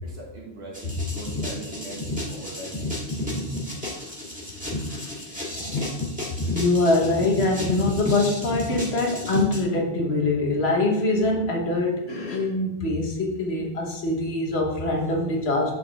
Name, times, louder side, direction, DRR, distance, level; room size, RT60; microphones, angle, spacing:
voice 1, 0.0-2.9, right 2 dB, 85° right, -4 dB, 2.0 m, -40 dB
sound 1, 0.7-9.6, left 1 dB, 5° right, 1.8 m, -31 dB
voice 2, 4.8-5.7 6.5-15.7, left 2 dB, 75° left, 0 dB, 1.6 m, -24 dB
7.3 x 5.8 x 3.7 m, 0.87 s
omnidirectional pair, 1.1 m